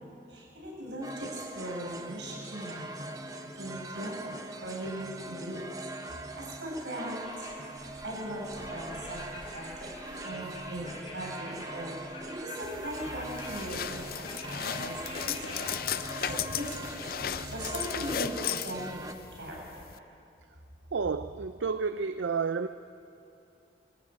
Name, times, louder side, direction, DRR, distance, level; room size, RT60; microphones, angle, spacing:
voice 1, 0.3-3.1 3.6-4.4 4.6-5.7 6.1-7.5 8.0-9.2 9.5-15.0 15.2-15.6 16.2-16.9 17.2-19.8, right 1 dB, 70° right, -2 dB, 6.9 m, -39 dB
sound 1, 1.0-19.1, right 2 dB, 20° right, 0.9 m, -42 dB
sound 2, 7.2-15.6, left 1 dB, 30° left, 5.3 m, -46 dB
Opening Backpack, 12.6-20.0, left 8 dB, 50° left, 0.5 m, -36 dB
voice 2, 20.9-22.7, right 5 dB, 85° right, 10 dB, 0.5 m, -30 dB
23.0 x 14.0 x 8.9 m, 2.8 s
head